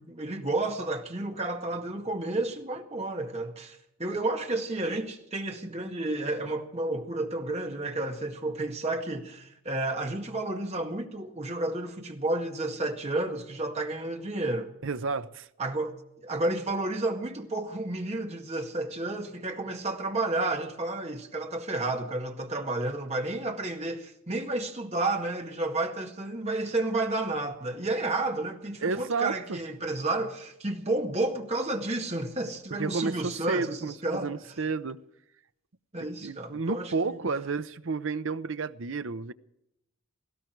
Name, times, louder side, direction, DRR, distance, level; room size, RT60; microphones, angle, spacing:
voice 1, 0.0-14.7 15.6-15.9 16.2-34.3 35.9-37.3, right 2 dB, 30° right, 2.0 m, -31 dB
voice 2, 14.8-15.5 28.8-29.6 32.7-35.0 36.2-39.3, right 4 dB, 65° right, 0.7 m, -31 dB
18.5 x 16.0 x 4.6 m
head